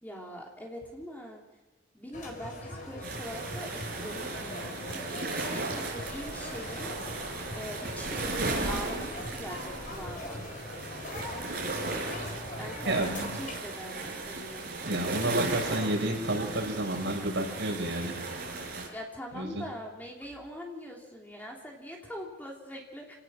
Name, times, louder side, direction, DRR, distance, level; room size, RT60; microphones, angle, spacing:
voice 1, 0.0-1.4 1.9-6.9 7.5-10.4 12.6-14.7 18.9-23.2, equal, 10° left, -1 dB, 3.1 m, -42 dB
sound 1, 2.1-13.6, left 1 dB, 45° left, 4.3 m, -41 dB
sound 2, 3.0-18.9, right 3 dB, 55° right, 5.2 m, -36 dB
voice 2, 12.8-13.4 14.8-18.1 19.3-19.6, right 1 dB, 80° right, 1 dB, 6.2 m, -30 dB
27.0 x 18.0 x 6.3 m, 1.1 s
head